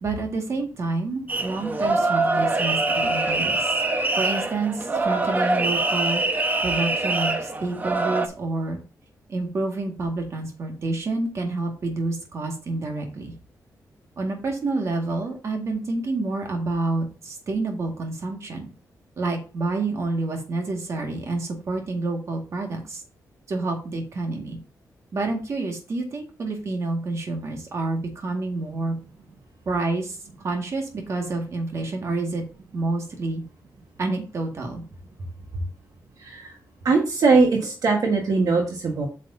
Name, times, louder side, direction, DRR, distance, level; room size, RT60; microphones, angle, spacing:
voice 1, 0.0-3.7 4.1-6.2 6.6-8.8 9.3-13.3 14.2-18.7 19.2-23.0 23.5-24.6 25.1-29.0 29.7-30.2 30.4-32.4 32.7-33.4 34.0-34.8 35.5-35.6, right 2 dB, 50° right, 2 dB, 1.9 m, -28 dB
sound 1, 1.3-8.3, right 2 dB, 25° right, 0.8 m, -24 dB
voice 2, 36.8-39.1, right 4 dB, 65° right, 1 dB, 1.5 m, -20 dB
8.0 x 6.4 x 2.8 m, 0.34 s
wide cardioid pair, 145°, 7 cm